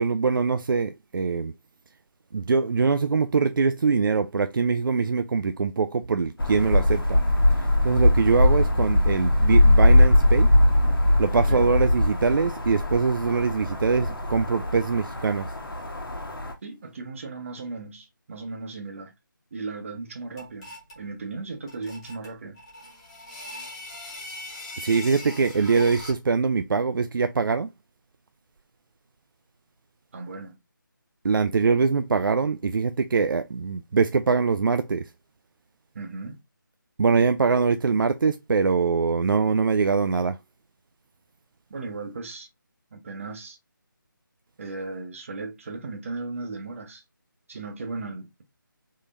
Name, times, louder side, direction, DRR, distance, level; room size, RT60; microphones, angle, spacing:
voice 1, 0.0-1.5 2.3-7.2 7.6-10.5 11.2-15.5 24.8-27.7 31.2-35.1 37.0-40.4, right 4 dB, 70° right, 0.4 m, -23 dB
sound 1, 6.4-16.5, left 1 dB, 85° left, 1.2 m, -21 dB
voice 2, 16.6-19.1 19.5-22.6 30.1-30.6 35.9-36.4 41.7-42.5 42.9-43.6 44.6-47.0 47.5-48.4, right 3 dB, 40° right, 0.8 m, -36 dB
sound 2, 20.4-21.0 21.7-26.3, left 1 dB, 15° left, 1.0 m, -40 dB
3.7 x 3.1 x 2.5 m
figure-of-eight pair, 165°, 11 cm